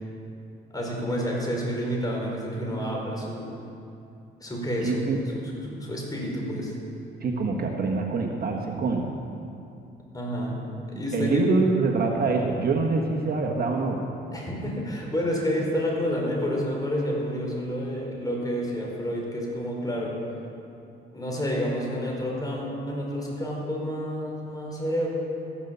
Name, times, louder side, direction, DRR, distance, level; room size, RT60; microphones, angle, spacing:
voice 1, 0.7-3.5 4.4-6.8 10.1-10.6 10.9-11.4 14.3-20.1 21.1-25.1, equal, 20° left, -2 dB, 4.6 m, -29 dB
voice 2, 4.8-5.2 7.2-9.2 10.9-14.0, right 3 dB, 50° right, 1 dB, 1.5 m, -25 dB
14.0 x 11.0 x 7.0 m, 2.6 s
cardioid pair, 90°, 20 cm